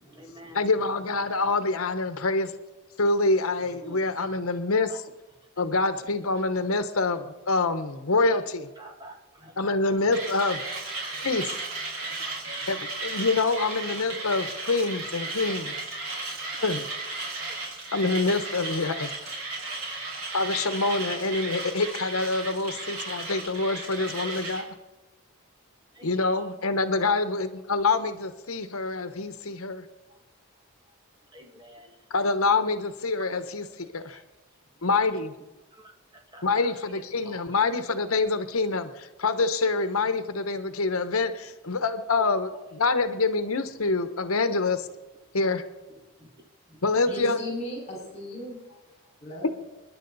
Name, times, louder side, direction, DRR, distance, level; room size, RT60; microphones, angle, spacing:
voice 1, 0.0-0.6 3.8-4.4 4.9-5.0 8.2-8.4 8.8-10.1 12.6-12.7 24.2-24.3 25.9-26.1 31.3-31.9 34.1-34.2 35.7-35.9 36.3-37.5 42.2-42.3 46.2-46.3 46.7-46.8 47.1-47.2, right 1 dB, 20° right, 1 dB, 2.1 m, -47 dB
voice 2, 0.5-2.5 3.0-5.1 5.6-8.7 9.6-10.6 11.2-11.5 12.7-15.7 16.6-16.8 17.9-19.1 20.3-24.6 26.0-29.8 32.1-34.2 34.8-35.3 36.4-44.9 45.3-45.6 46.8-47.4 49.4-49.5, left 3 dB, 80° left, 9 dB, 1.1 m, -26 dB
Mechanisms, 10.1-24.7, right 3 dB, 75° right, 4.4 m, -35 dB
voice 3, 47.1-48.6 49.2-49.5, left 1 dB, 30° left, -2 dB, 5.1 m, -36 dB
29.0 x 10.5 x 4.1 m, 1.1 s
head